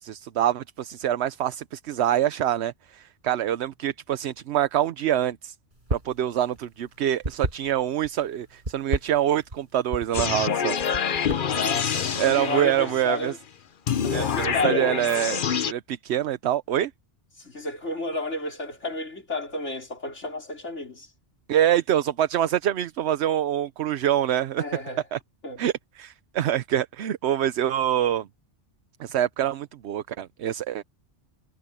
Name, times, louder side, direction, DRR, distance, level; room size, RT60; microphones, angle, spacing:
voice 1, 0.0-5.5 5.9-10.8 12.2-13.4 14.1-15.4 15.7-16.9 21.5-24.6 25.1-25.2 25.6-28.3 29.0-30.8, right 11 dB, 70° right, 0.9 m, -25 dB
sound 1, 5.8-6.2 6.5-8.1 8.6-9.6 9.9-10.3 10.8-11.6, right 1 dB, 45° right, 6.3 m, -30 dB
sound 2, 10.1-13.1 13.9-15.7, left 7 dB, 50° left, 0.9 m, -26 dB
voice 2, 11.5-13.4 14.0-15.0 17.4-21.1 24.6-25.0 25.4-25.6, left 2 dB, 80° left, 4.9 m, -32 dB
omnidirectional pair, 1.2 m